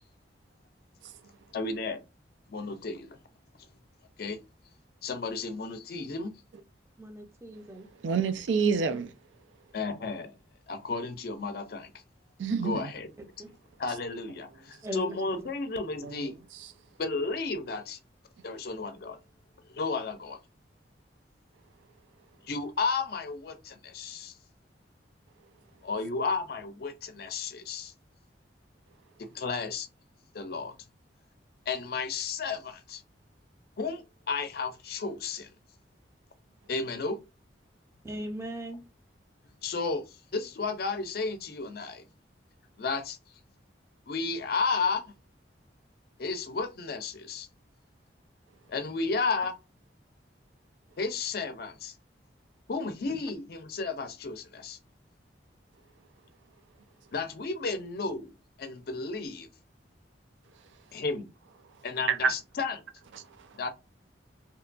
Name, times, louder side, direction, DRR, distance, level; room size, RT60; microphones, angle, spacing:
voice 1, 1.5-2.0 2.5-3.2 4.2-4.4 5.0-6.3 9.7-10.4 10.7-11.9 12.6-13.1 13.8-16.3 17.0-18.0 18.4-19.2 19.7-20.4 22.4-24.3 25.8-27.9 29.2-29.9 30.3-30.7 31.7-33.0 33.8-35.5 36.7-37.2 39.6-42.1 42.8-43.2 44.1-45.1 46.2-47.5 48.7-49.6 51.0-51.9 52.7-54.8 57.1-59.5 60.9-61.3 61.8-62.8 63.5-63.7, left 4 dB, 55° left, 0.5 m, -33 dB
voice 2, 7.0-7.9 13.4-13.5 14.8-15.2 38.0-38.8, right 1 dB, 15° right, 0.5 m, -38 dB
voice 3, 8.0-9.1 12.4-12.9 16.0-16.1 62.1-62.3, right 5 dB, 90° right, 0.4 m, -26 dB
2.8 x 2.2 x 2.5 m
head